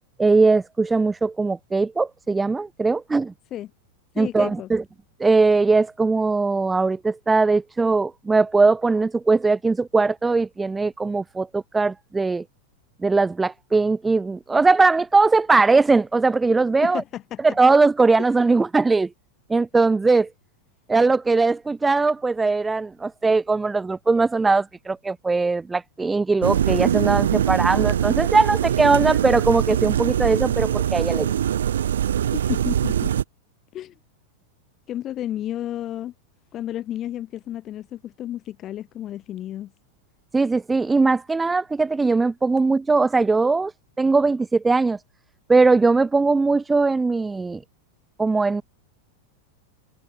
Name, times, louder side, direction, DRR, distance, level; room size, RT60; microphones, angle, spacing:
voice 1, 0.2-3.3 4.2-4.8 5.2-12.4 13.0-17.0 17.4-19.1 19.5-20.3 20.9-31.3 40.3-43.7 44.0-45.0 45.5-47.6 48.2-48.6, right 3 dB, 10° right, 1.3 m, -20 dB
voice 2, 4.2-4.7 16.8-17.4 32.3-33.1 33.7-33.9 34.9-36.1 36.5-39.7, left 12 dB, 30° left, 2.6 m, -32 dB
sound 1, 26.4-33.2, right 10 dB, 65° right, 0.3 m, -22 dB
figure-of-eight pair, 90°, 0 cm